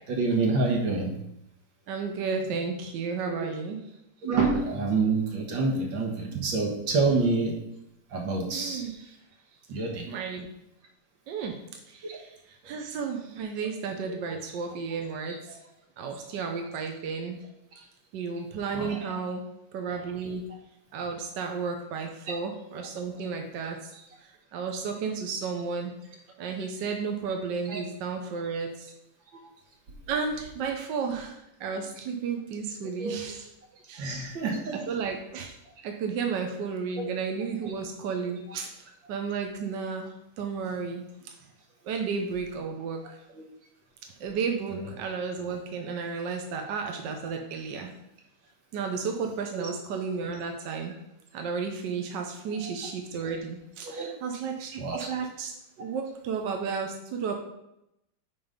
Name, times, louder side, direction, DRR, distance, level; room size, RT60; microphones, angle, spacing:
voice 1, 0.1-1.2 3.3-3.5 4.2-7.6 8.1-8.8 9.7-10.1 12.0-12.2 18.7-19.0 22.3-22.4 27.7-27.8 33.0-33.1 34.0-34.9 37.6-37.7 38.5-38.6 44.7-44.8 49.6-49.7 53.8-54.1 54.8-55.1, right 3 dB, 90° right, 0 dB, 2.1 m, -27 dB
voice 2, 1.9-3.8 6.3-6.5 8.5-9.2 10.1-10.5 11.3-11.6 11.9-15.6 16.0-17.4 18.1-19.4 19.7-20.4 20.9-24.1 24.5-25.9 26.4-28.9 30.1-33.5 33.9-34.3 34.7-35.5 35.8-38.7 39.1-41.3 41.9-43.2 44.2-47.9 48.7-51.0 51.3-55.5 55.8-57.4, right 5 dB, 70° right, 3 dB, 1.4 m, -33 dB
8.4 x 4.0 x 5.1 m, 0.82 s
omnidirectional pair, 2.0 m